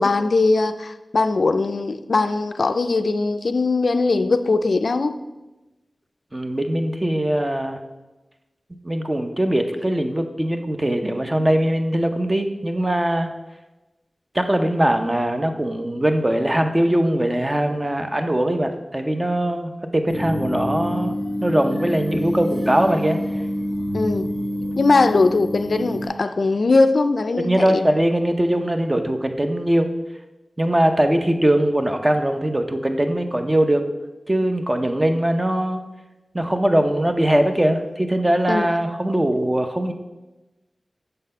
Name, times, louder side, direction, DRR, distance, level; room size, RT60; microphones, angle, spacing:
voice 1, 0.0-5.1 23.9-24.3 24.8-27.9 38.5-38.7, left 3 dB, 70° left, 10 dB, 0.3 m, -20 dB
voice 2, 6.3-7.8 8.8-13.3 14.3-21.1 21.4-23.2 27.4-29.9 30.6-33.8 34.3-35.8 36.3-39.9, right 1 dB, 20° right, 6 dB, 0.6 m, -21 dB
sound 1, 20.1-26.1, equal, 55° right, 2.1 m, -27 dB
6.6 x 4.0 x 5.3 m, 1.1 s
wide cardioid pair, 80°, 0 cm